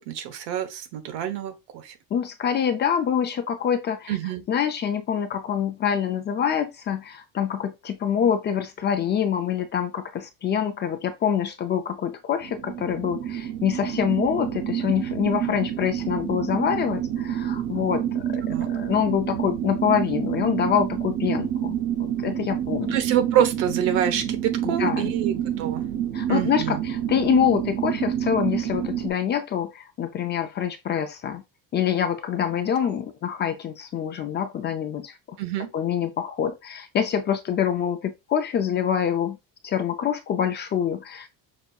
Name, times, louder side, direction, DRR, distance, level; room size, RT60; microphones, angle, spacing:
voice 1, 0.1-1.9 4.1-4.4 18.5-18.7 22.8-25.9 26.3-26.8 35.4-35.7, right 10 dB, 85° right, 1.1 m, -26 dB
voice 2, 2.1-4.1 4.5-23.0 24.6-25.1 26.1-31.4 31.7-35.4 35.7-39.4 39.6-41.3, left 8 dB, 30° left, 0.4 m, -25 dB
sound 1, 12.4-29.1, right 10 dB, 50° right, 0.7 m, -28 dB
5.8 x 2.6 x 2.3 m
cardioid pair, 160°, 38 cm